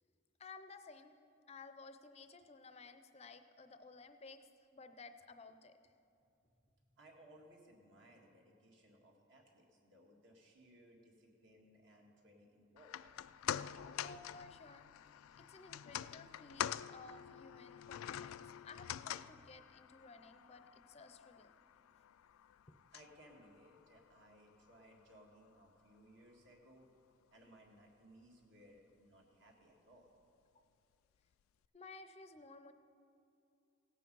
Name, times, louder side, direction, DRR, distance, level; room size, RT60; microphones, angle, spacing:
voice 1, 0.4-1.2 1.5-4.5 4.7-5.9 13.8-14.9 15.1-15.2 15.5-21.5 22.7-22.8 31.7-32.7, left 3 dB, 30° left, 10 dB, 0.5 m, -56 dB
voice 2, 6.9-13.0 22.9-26.9 27.3-30.1, right 1 dB, 60° right, 0 dB, 1.9 m, -63 dB
sound 1, 12.8-25.1 25.5-25.6, left 10 dB, 85° left, 0.3 m, -46 dB
17.0 x 8.4 x 5.4 m, 2.7 s
head